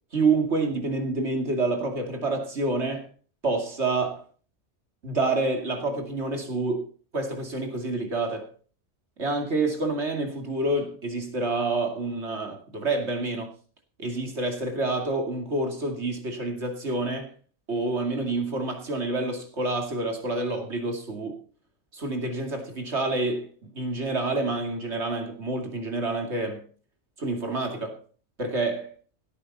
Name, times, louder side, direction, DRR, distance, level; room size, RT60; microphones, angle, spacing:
voice 1, 0.1-3.1 3.4-4.2 5.0-6.9 7.1-8.5 9.2-13.5 14.0-17.3 17.7-21.4 21.9-26.7 27.2-28.0 28.4-28.9, right 2 dB, 65° right, 2.8 m, -28 dB
17.0 x 8.9 x 4.2 m
omnidirectional pair, 1.2 m